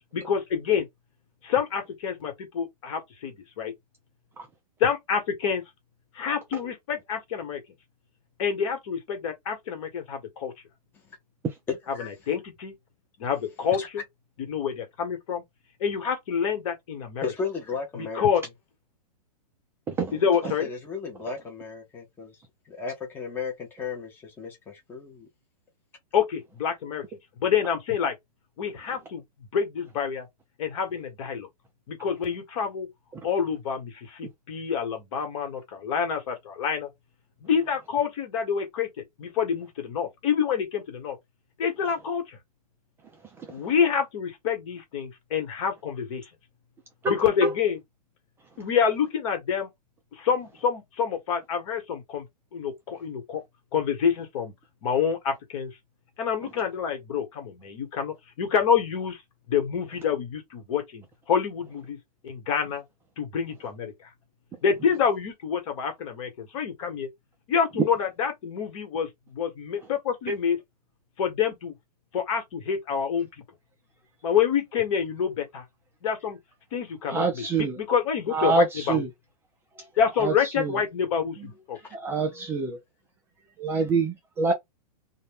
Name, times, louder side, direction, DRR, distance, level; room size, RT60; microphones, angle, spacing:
voice 1, 0.1-0.9 1.4-3.7 4.8-5.6 6.1-7.6 8.4-10.5 12.0-12.7 13.2-14.0 14.5-15.4 15.8-17.3 17.9-18.4 20.1-20.7 26.1-27.0 27.4-28.1 28.6-30.3 30.6-31.5 31.9-32.9 33.2-36.9 37.4-41.2 41.6-42.4 43.5-46.2 47.1-47.8 48.6-49.7 50.1-52.3 52.5-53.4 53.7-54.5 54.8-55.7 56.2-59.2 59.5-62.0 62.2-62.8 63.2-63.9 64.6-67.1 67.5-70.6 71.2-71.7 72.1-73.3 74.2-75.6 76.0-76.4 76.7-79.0 80.0-81.8, left 7 dB, 55° left, 1.4 m, -27 dB
voice 2, 11.7-12.1 13.8-13.9 17.2-18.3 20.6-22.4 22.7-25.3 81.7-81.9, left 5 dB, 10° left, 0.7 m, -35 dB
voice 3, 19.9-20.2 43.4-43.5 47.0-47.2 47.4-47.5 70.3-70.4 77.1-77.8 78.3-79.1 80.2-80.8 81.9-82.8 83.6-84.5, right 4 dB, 10° right, 0.4 m, -26 dB
2.5 x 2.2 x 3.4 m
hypercardioid pair, 145°, 20 cm